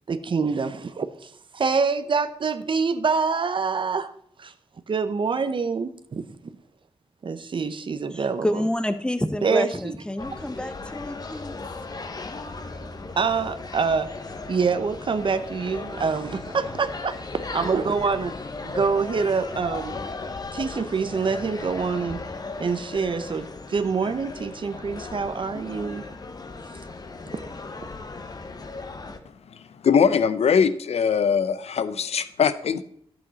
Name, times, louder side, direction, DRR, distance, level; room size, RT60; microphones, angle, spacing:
voice 1, 0.1-4.1 4.4-4.5 4.9-6.5 7.2-8.7 9.4-9.9 10.3-10.4 13.2-14.2 14.5-18.4 18.6-20.0 20.5-22.2 22.6-26.0 27.3-27.5, right 5 dB, 50° right, 11 dB, 0.7 m, -26 dB
voice 2, 8.1-11.6, left 1 dB, 10° left, 11 dB, 0.7 m, -28 dB
sound 1, 10.2-29.2, left 3 dB, 40° left, 0.9 m, -37 dB
voice 3, 29.8-32.8, left 6 dB, 80° left, 13 dB, 0.6 m, -21 dB
12.0 x 7.8 x 4.1 m, 0.64 s
wide cardioid pair, 115°, 11 cm